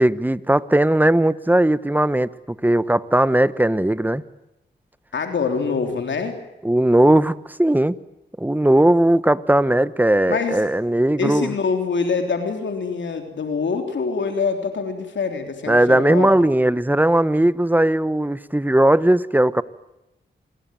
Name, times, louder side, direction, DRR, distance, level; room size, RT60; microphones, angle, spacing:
voice 1, 0.0-2.3 2.6-4.2 6.6-8.0 8.4-11.5 15.7-19.6, right 1 dB, 10° right, 16 dB, 1.2 m, -18 dB
voice 2, 5.1-6.3 10.3-10.6 11.2-16.3, left 5 dB, 80° left, 5 dB, 3.5 m, -24 dB
28.0 x 21.5 x 9.2 m, 0.94 s
cardioid pair, 65°, 19 cm